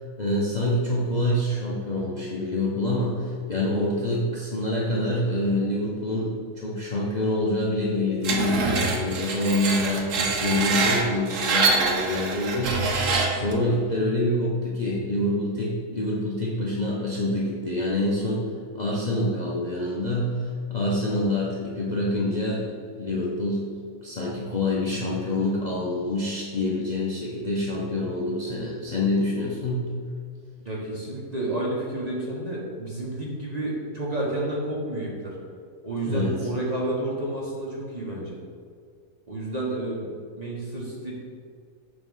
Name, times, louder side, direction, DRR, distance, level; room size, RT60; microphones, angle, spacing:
voice 1, 0.2-18.5 18.7-22.6 23.0-23.6 24.0-30.0 36.0-36.4, left 1 dB, 80° left, -4 dB, 0.4 m, -26 dB
Screech, 8.2-13.5, right 4 dB, 60° right, 0.9 m, -25 dB
voice 2, 30.6-35.4 35.8-38.4 39.3-41.1, right 1 dB, 30° right, -4 dB, 0.8 m, -30 dB
6.8 x 3.0 x 5.3 m, 2.1 s
omnidirectional pair, 1.9 m